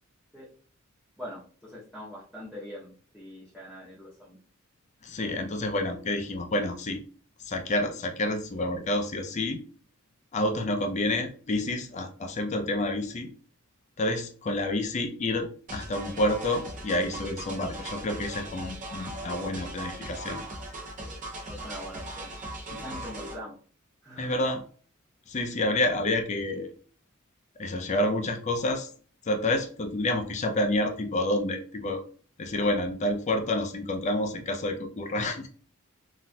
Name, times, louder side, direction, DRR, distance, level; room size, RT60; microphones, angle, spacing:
voice 1, 1.2-4.4 21.0-21.2 21.5-22.3 22.7-23.5 24.0-24.5, equal, ahead, -8 dB, 0.8 m, -43 dB
voice 2, 5.0-7.0 7.4-9.6 10.3-13.3 14.0-20.4 22.7-22.8 24.2-24.6 25.3-26.7 27.6-28.9 29.2-32.0 32.4-35.5, left 1 dB, 35° left, 5 dB, 0.5 m, -29 dB
sound 1, 15.7-23.4, right 1 dB, 40° right, 0.6 m, -39 dB
3.9 x 2.6 x 2.3 m, 0.42 s
head